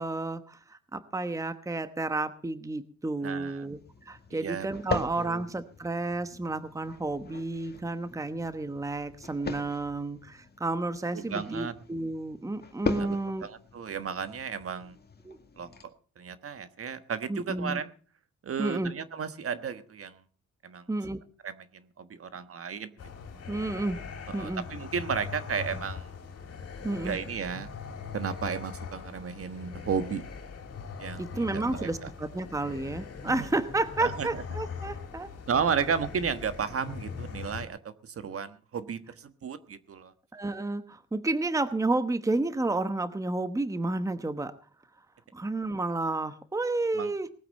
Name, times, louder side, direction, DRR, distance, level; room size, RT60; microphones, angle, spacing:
voice 1, 0.0-13.5 15.2-15.4 17.3-17.8 18.6-18.9 20.9-21.2 23.5-24.0 24.3-24.6 26.8-27.2 31.2-35.3 40.3-44.5 45.3-47.3, right 2 dB, 10° right, 11 dB, 1.0 m, -31 dB
voice 2, 3.2-3.7 4.3-5.4 11.1-11.7 13.0-15.0 15.6-15.7 16.2-17.9 18.4-20.2 20.6-20.9 21.4-22.9 24.3-26.1 27.0-27.7 28.1-30.2 31.0-32.1 33.2-33.5 34.0-34.4 35.5-40.1 46.9-47.1, right 6 dB, 50° right, 11 dB, 1.4 m, -34 dB
sound 1, 3.4-15.8, left 5 dB, 35° left, 2.0 m, -40 dB
sound 2, 23.0-37.7, left 5 dB, 55° left, 3.0 m, -41 dB
19.0 x 8.5 x 6.5 m, 0.42 s
cardioid pair, 90°, 30 cm